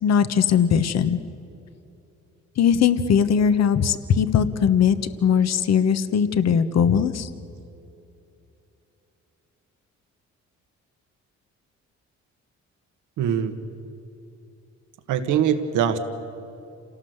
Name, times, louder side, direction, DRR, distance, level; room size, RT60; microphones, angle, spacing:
voice 1, 0.0-1.2 2.6-5.0 5.2-7.3, left 7 dB, 60° left, 11 dB, 1.2 m, -20 dB
voice 2, 13.2-13.6 15.1-16.0, right 8 dB, 90° right, 8 dB, 1.6 m, -22 dB
27.5 x 18.0 x 8.1 m, 2.8 s
cardioid pair, 90°, 30 cm